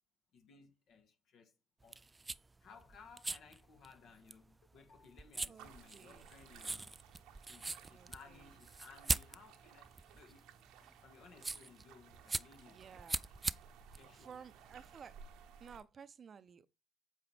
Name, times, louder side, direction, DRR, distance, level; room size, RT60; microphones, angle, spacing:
voice 1, 0.3-1.5 1.8-2.0 2.6-6.9 7.4-10.5 11.0-13.2 13.9-14.5, left 5 dB, 55° left, 1.5 m, -60 dB
sound 1, 1.8-15.0, right 3 dB, 20° right, 0.3 m, -43 dB
voice 2, 5.5-6.3 7.9-8.6 12.7-13.2 14.1-15.2 15.6-16.7, right 6 dB, 40° right, 0.7 m, -55 dB
sound 2, 5.6-15.8, right 7 dB, 65° right, 1.0 m, -59 dB
8.1 x 4.6 x 3.5 m
hypercardioid pair, 60°, 0 cm